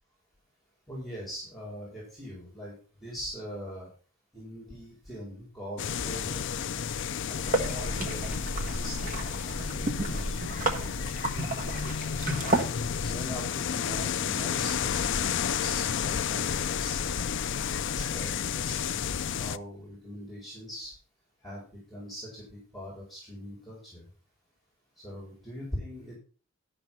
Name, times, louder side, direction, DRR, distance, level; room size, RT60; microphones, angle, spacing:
voice 1, 0.9-3.9 4.3-6.5 7.3-8.3 8.7-9.1 9.4-10.9 11.3-11.6 12.4-17.1 17.9-19.1 19.4-20.9 21.4-24.1 25.0-26.1, equal, ahead, -5 dB, 4.5 m, -42 dB
sound 1, 5.8-19.6, left 7 dB, 60° left, 0.5 m, -31 dB
sound 2, 7.5-12.6, right 1 dB, 40° right, 1.6 m, -31 dB
12.0 x 6.2 x 5.6 m, 0.38 s
head